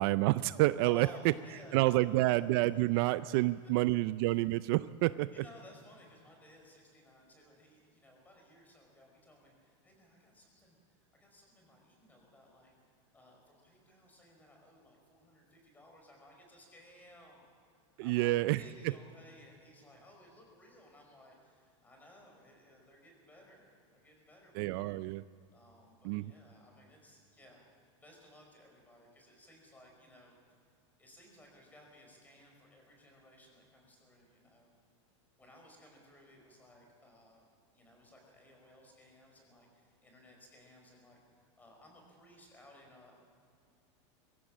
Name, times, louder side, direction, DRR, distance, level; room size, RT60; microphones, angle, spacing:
voice 1, 0.0-1.1 1.7-5.3 18.0-18.6 24.6-25.2 26.0-26.3, right 18 dB, 50° right, 15 dB, 0.4 m, -28 dB
voice 2, 0.8-2.3 2.7-3.8 4.2-4.3 5.3-12.7 13.1-17.4 17.8-24.9 25.5-30.3 31.0-34.7 35.4-37.5 37.7-43.1, equal, 10° left, 1 dB, 5.1 m, -58 dB
23.0 x 15.0 x 7.4 m, 2.3 s
supercardioid pair, 150°, 16 cm